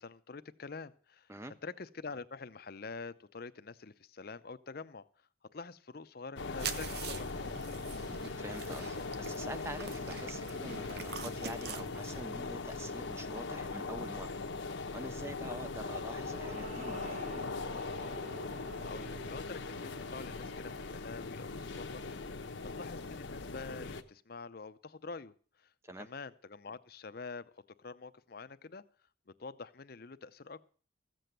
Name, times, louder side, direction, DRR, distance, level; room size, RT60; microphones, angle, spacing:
voice 1, 0.0-1.3 1.6-5.1 5.5-7.8 15.5-15.8 18.3-25.7 26.0-27.5 27.8-28.8 29.4-30.6, left 4 dB, 50° left, 13 dB, 0.6 m, -46 dB
sound 1, 6.4-24.0, left 3 dB, 70° left, 0.9 m, -40 dB
sound 2, 6.6-12.2, right 6 dB, 55° right, 0.8 m, -44 dB
voice 2, 8.3-17.2 25.8-26.1, right 1 dB, 15° right, 11 dB, 0.5 m, -46 dB
sound 3, 15.7-22.1, right 1 dB, 35° right, 1.2 m, -50 dB
14.5 x 7.8 x 6.7 m, 0.43 s
head